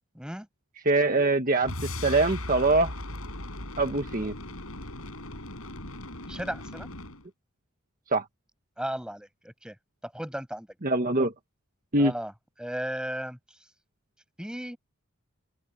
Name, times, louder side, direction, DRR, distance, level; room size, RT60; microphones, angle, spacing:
voice 1, 0.1-0.5 6.3-6.9 8.8-9.7 10.0-10.7 12.0-12.3 12.6-13.4 14.4-14.8, equal, 5° right, 6.7 m, -35 dB
voice 2, 0.8-1.7 2.0-2.9 3.8-4.3 8.1-8.2 10.8-11.3 11.9-12.1, right 2 dB, 40° right, 1.5 m, -23 dB
sound 1, 1.6-7.2, left 1 dB, 75° left, 6.6 m, -38 dB
open air
head